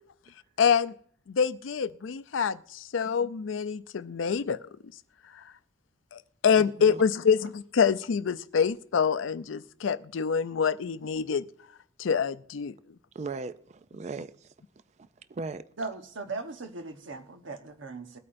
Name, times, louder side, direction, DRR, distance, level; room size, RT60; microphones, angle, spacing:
voice 1, 0.6-1.0 1.3-4.6 5.3-5.4 6.1-11.5 12.0-12.7, left 6 dB, 90° left, 0.5 m, -26 dB
voice 2, 6.5-7.0 13.1-14.5 15.0-15.6, right 4 dB, 35° right, 0.4 m, -38 dB
voice 3, 15.8-18.2, right 3 dB, 85° right, 1.1 m, -38 dB
21.5 x 8.5 x 2.6 m
head